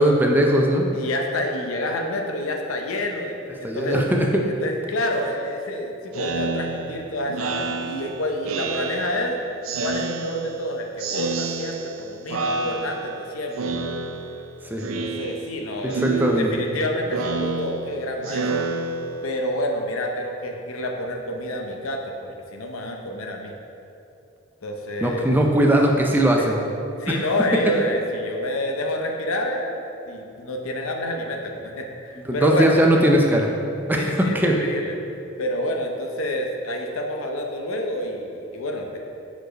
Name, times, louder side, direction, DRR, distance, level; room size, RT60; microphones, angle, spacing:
voice 1, 0.0-0.9 3.6-4.4 14.6-15.0 15.8-16.5 25.0-26.5 27.1-27.2 32.2-33.5 33.9-34.6, right 1 dB, 10° right, 1 dB, 0.4 m, -19 dB
voice 2, 0.9-4.0 4.4-9.4 9.8-13.9 14.9-18.7 19.2-23.5 24.6-25.4 26.4-26.5 27.0-32.8 34.0-35.0 35.4-39.0, left 1 dB, 85° left, 2 dB, 0.7 m, -28 dB
Speech synthesizer, 6.1-9.3 9.6-10.7 11.0-12.0 12.3-13.2 13.6-14.5 14.8-15.6 15.9-19.4, right 4 dB, 85° right, 0.5 m, -29 dB
4.7 x 4.6 x 5.0 m, 2.7 s
head